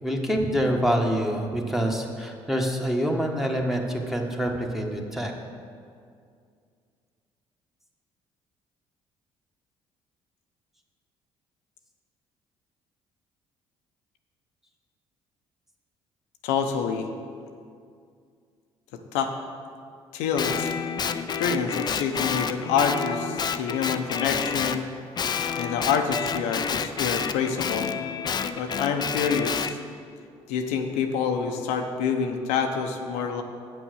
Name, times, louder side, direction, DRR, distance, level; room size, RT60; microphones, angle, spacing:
voice 1, 0.0-5.3, equal, ahead, 1 dB, 1.3 m, -26 dB
voice 2, 16.4-17.1 19.1-19.3 20.1-20.7 21.4-24.8 25.6-27.9 28.5-29.8 30.5-33.4, left 6 dB, 90° left, 4 dB, 0.8 m, -27 dB
Guitar, 20.4-24.8 25.2-29.7, left 6 dB, 40° left, 0.5 m, -29 dB
8.5 x 6.2 x 6.4 m, 2.2 s
supercardioid pair, 75°, 11 cm